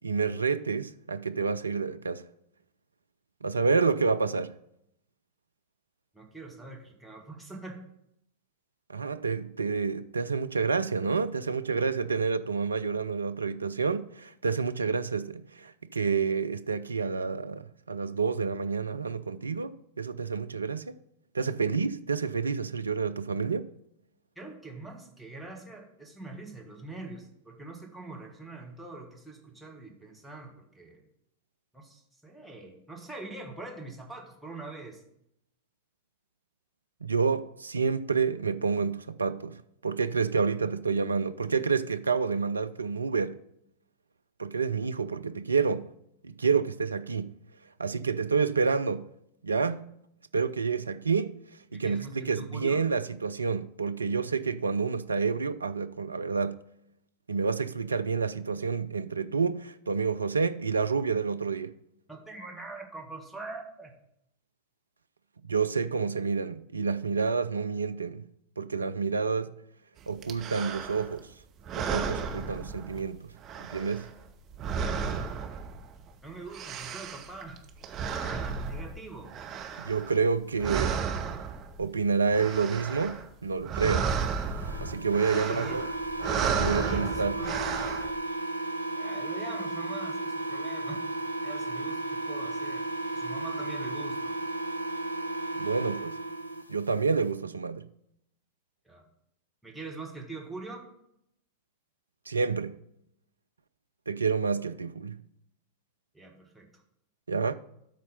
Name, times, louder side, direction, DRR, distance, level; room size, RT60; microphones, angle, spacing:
voice 1, 0.0-2.3 3.4-4.5 8.9-21.0 21.3-23.7 37.0-39.6 39.8-43.4 44.4-45.9 46.2-47.3 47.8-49.1 49.4-49.9 50.3-51.4 51.7-56.6 57.3-61.7 65.5-68.2 68.6-69.5 70.1-71.3 71.7-73.3 73.7-74.1 79.8-80.9 81.8-84.1 84.8-85.8 86.5-87.4 95.6-96.2 96.7-97.8 102.3-102.8 104.1-105.2 107.3-107.5, right 5 dB, 75° right, 0.4 m, -29 dB
voice 2, 6.1-7.8 24.3-31.0 31.7-35.0 51.7-52.8 62.1-63.9 76.2-77.6 78.2-79.3 85.3-85.8 86.8-87.7 88.9-91.0 91.4-94.3 98.8-99.1 99.6-100.9 106.1-106.7, right 3 dB, ahead, 1.6 m, -43 dB
sound 1, 70.2-71.2 71.6-73.2 73.4-76.1 76.3-80.3 80.6-81.9 82.2-83.3 83.5-88.1, right 6 dB, 30° right, 1.0 m, -33 dB
sound 2, 84.5-96.6, right 2 dB, 85° left, 0.6 m, -34 dB
12.5 x 4.2 x 5.4 m
figure-of-eight pair, 90°, 0 cm